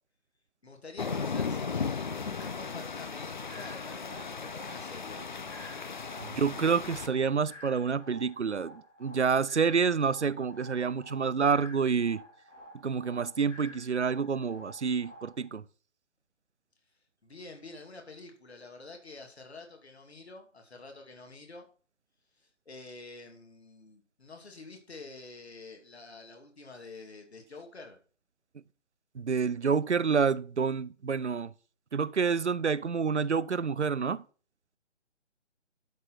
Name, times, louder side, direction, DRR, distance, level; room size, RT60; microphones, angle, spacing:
voice 1, 0.6-5.2 17.2-21.7 22.4-28.0, left 3 dB, 60° left, 2.6 m, -48 dB
sound 1, 1.0-7.1, left 5 dB, 40° left, 0.8 m, -36 dB
sound 2, 3.5-15.5, equal, 75° left, 3.8 m, -51 dB
voice 2, 6.2-12.2 12.8-15.6 29.2-31.5 31.9-34.2, right 5 dB, 70° right, 0.7 m, -28 dB
12.0 x 6.1 x 4.3 m
figure-of-eight pair, 145°, 37 cm